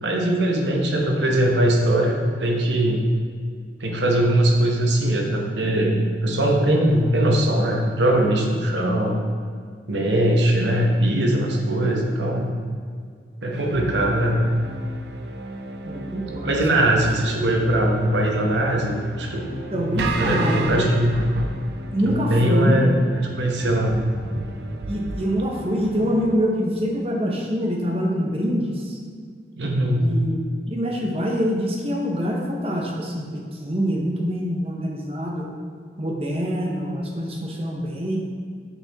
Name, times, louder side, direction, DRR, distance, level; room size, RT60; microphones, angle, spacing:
voice 1, 0.0-3.1 3.8-9.2 9.9-12.5 13.4-14.4 16.4-19.5 19.7-21.2 22.0-24.0 29.6-30.1, right 1 dB, 90° right, 0 dB, 0.9 m, -21 dB
sound 1, 13.5-26.4, right 2 dB, 70° right, 0.5 m, -33 dB
voice 2, 15.8-16.9 19.7-20.9 21.9-22.8 24.9-29.0 29.9-30.4 30.7-35.5 36.0-38.2, equal, 35° right, -1 dB, 0.8 m, -25 dB
7.1 x 4.3 x 3.5 m, 2.1 s
head